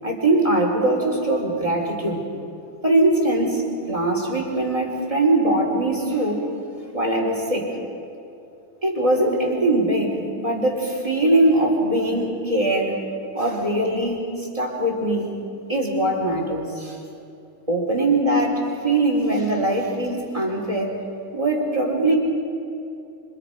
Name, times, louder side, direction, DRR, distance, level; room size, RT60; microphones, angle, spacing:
voice 1, 0.0-2.2 2.8-6.4 6.9-7.8 8.8-13.0 13.3-17.0 17.7-21.0 21.3-22.1, right 1 dB, 15° right, -1 dB, 3.9 m, -21 dB
27.5 x 25.5 x 5.1 m, 2.6 s
omnidirectional pair, 2.3 m